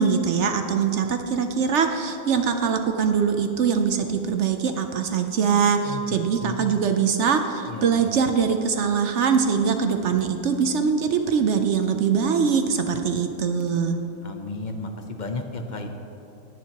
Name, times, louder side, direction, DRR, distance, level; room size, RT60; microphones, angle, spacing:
voice 1, 0.0-14.0, right 6 dB, 60° right, 6 dB, 0.8 m, -22 dB
voice 2, 5.8-6.8 7.7-8.1 14.2-15.9, left 3 dB, 45° left, 4 dB, 0.6 m, -34 dB
20.5 x 7.2 x 2.9 m, 2.9 s
omnidirectional pair, 1.6 m